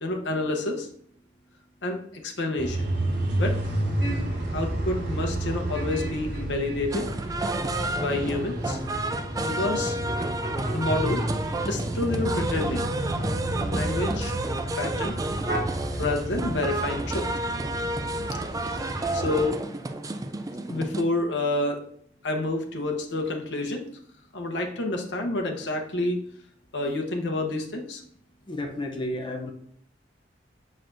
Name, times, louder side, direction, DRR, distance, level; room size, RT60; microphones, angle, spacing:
voice 1, 0.0-0.9 1.8-2.9 3.4-3.5 4.1-4.2 4.5-7.0 8.0-8.8 9.5-10.0 10.7-11.2 11.7-12.9 13.7-14.3 14.8-15.1 15.9-17.2 18.7-18.8 19.1-19.6 20.7-21.8 22.2-23.8 24.3-26.2 26.7-28.0, left 2 dB, 85° left, 2 dB, 0.9 m, -28 dB
sound 1, 2.6-19.4, right 1 dB, 75° right, 2.7 m, -31 dB
sound 2, 6.9-21.0, right 2 dB, 20° right, 0.4 m, -31 dB
voice 2, 28.5-29.5, left 1 dB, 25° left, 2 dB, 0.6 m, -32 dB
6.5 x 5.9 x 2.6 m, 0.63 s
head